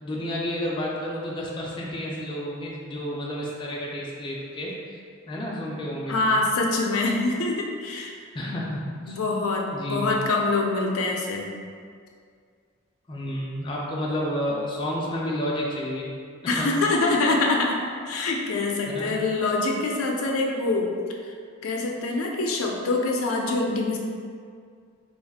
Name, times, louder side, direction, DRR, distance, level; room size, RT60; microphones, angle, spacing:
voice 1, 0.0-5.0 5.3-6.4 8.3-9.2 9.7-10.2 13.1-16.1 16.6-16.7 18.9-19.1, equal, 25° left, -4 dB, 0.3 m, -31 dB
voice 2, 6.1-8.1 8.5-8.6 9.1-11.5 16.5-20.9 21.6-24.0, left 3 dB, 85° left, 0 dB, 0.4 m, -25 dB
2.5 x 2.3 x 4.0 m, 2.2 s
head